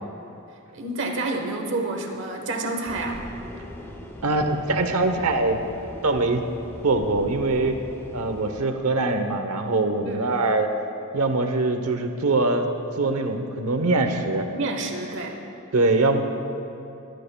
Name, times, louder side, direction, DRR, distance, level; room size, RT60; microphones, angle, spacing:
voice 1, 0.7-3.2 10.0-10.3 14.5-15.4, right 2 dB, 60° right, 2 dB, 1.3 m, -29 dB
sound 1, 2.9-8.6, equal, 10° left, 0.8 m, -41 dB
voice 2, 4.2-5.6 6.0-6.4 6.8-7.8 8.1-10.7 11.1-12.7 13.0-14.5 15.7-16.2, right 2 dB, 90° right, 7 dB, 0.9 m, -23 dB
20.5 x 12.5 x 2.3 m, 2.8 s
head